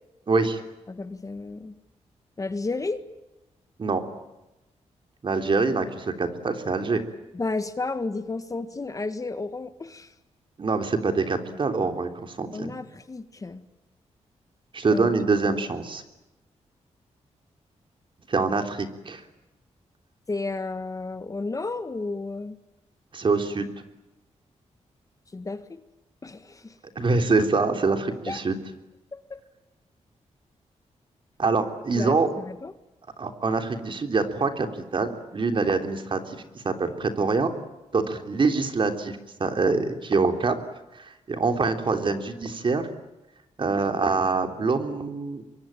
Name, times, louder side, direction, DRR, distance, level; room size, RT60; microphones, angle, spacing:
voice 1, 0.3-0.6 3.8-4.0 5.2-7.0 10.6-12.7 14.7-16.0 18.3-19.2 23.1-23.7 26.9-28.6 31.4-32.3 33.2-37.5 37.9-40.5 41.0-42.9 43.6-45.4, right 4 dB, 45° right, 6 dB, 3.4 m, -25 dB
voice 2, 0.9-1.7 2.4-3.0 7.3-10.1 12.5-13.6 14.9-15.1 20.3-22.6 25.3-25.8 26.2-26.7 28.3-28.4 29.1-29.4 32.0-32.7, left 3 dB, 30° left, 10 dB, 1.6 m, -32 dB
25.5 x 23.0 x 9.1 m, 0.99 s
cardioid pair, 105°, 12 cm